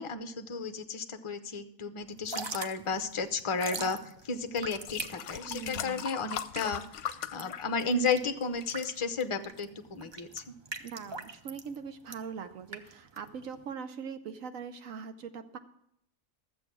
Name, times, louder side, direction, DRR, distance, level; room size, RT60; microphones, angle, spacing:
voice 1, 0.0-10.6, left 4 dB, 30° left, 9 dB, 0.6 m, -33 dB
Drip / Trickle dribble, 2.1-13.7, right 3 dB, 35° right, 0.4 m, -43 dB
sound 1, 4.0-4.1 4.6-8.1 8.4-8.9 9.6-9.7, left 8 dB, 70° left, 0.9 m, -39 dB
voice 2, 5.5-6.1 10.8-15.6, right 6 dB, 75° right, 9 dB, 1.3 m, -41 dB
13.0 x 7.7 x 6.1 m, 0.74 s
omnidirectional pair, 1.4 m